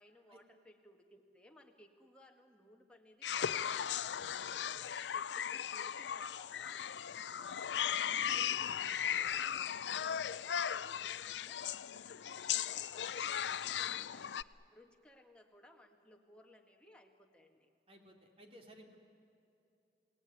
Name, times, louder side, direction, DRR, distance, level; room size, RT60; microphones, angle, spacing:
voice 1, 0.0-6.9 7.4-14.3 14.7-17.7, left 1 dB, 5° left, 2 dB, 1.8 m, -62 dB
sound 1, 3.2-14.4, left 9 dB, 85° left, 0.5 m, -37 dB
voice 2, 17.9-19.0, equal, 30° right, 2 dB, 2.8 m, -58 dB
28.5 x 18.0 x 9.6 m, 2.7 s
head